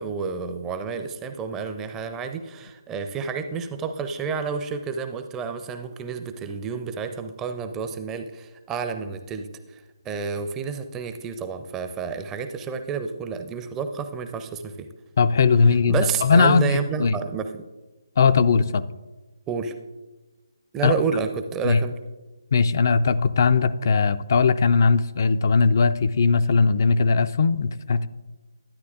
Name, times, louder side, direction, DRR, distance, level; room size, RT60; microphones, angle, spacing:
voice 1, 0.0-14.9 15.9-17.7 19.5-19.7 20.7-22.0, right 5 dB, 15° right, 7 dB, 0.5 m, -30 dB
voice 2, 15.2-17.1 18.2-18.8 20.8-20.9 21.6-21.8 22.5-28.1, left 5 dB, 50° left, 12 dB, 0.3 m, -19 dB
12.0 x 9.4 x 2.4 m, 1.2 s
figure-of-eight pair, 150°, 2 cm